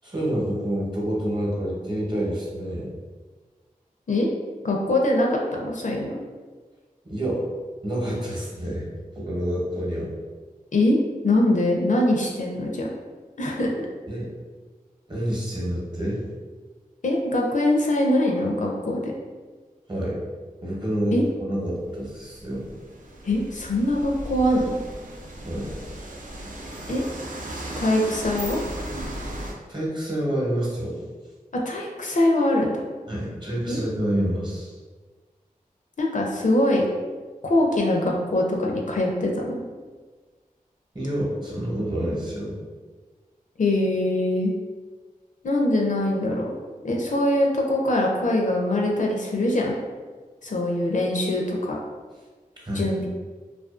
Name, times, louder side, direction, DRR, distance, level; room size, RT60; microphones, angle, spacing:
voice 1, 0.0-2.9 7.0-7.4 7.8-8.9 9.1-10.1 14.1-14.3 15.1-16.2 19.9-20.2 20.6-22.7 25.4-25.7 29.7-31.0 33.1-34.7 40.9-42.6 52.6-52.9, right 1 dB, 30° right, -5 dB, 0.9 m, -28 dB
voice 2, 4.6-6.2 10.7-11.0 11.2-12.9 13.4-13.7 17.0-19.1 21.1-21.2 23.2-24.8 26.9-27.0 27.8-28.6 31.5-32.8 33.7-33.8 36.0-36.8 37.4-39.6 43.6-44.5 45.4-46.5 46.8-49.8 50.4-51.8 52.7-53.0, left 1 dB, 60° left, -1 dB, 0.4 m, -23 dB
sound 1, 21.8-29.5, right 1 dB, 65° right, 0.4 m, -36 dB
2.4 x 2.3 x 2.4 m, 1.4 s
cardioid pair, 45°, 15 cm